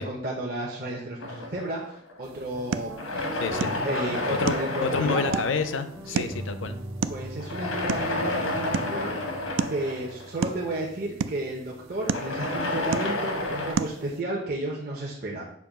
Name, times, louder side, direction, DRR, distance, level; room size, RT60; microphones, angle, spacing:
voice 1, 0.0-3.2 3.8-5.4 6.1-6.3 7.1-9.3 9.7-15.5, right 1 dB, 50° right, -3 dB, 0.9 m, -32 dB
sound 1, 1.2-2.4 2.9-6.1 7.4-10.8 11.9-13.7, left 2 dB, 90° left, 1.0 m, -31 dB
sound 2, 2.2-14.2, right 6 dB, 75° right, 0.3 m, -35 dB
Guitar, 2.5-12.0, equal, 15° right, 0.6 m, -42 dB
voice 2, 3.4-3.7 4.3-4.6 4.8-6.8, left 4 dB, 70° left, 10 dB, 0.5 m, -28 dB
6.9 x 2.7 x 5.0 m, 0.69 s
head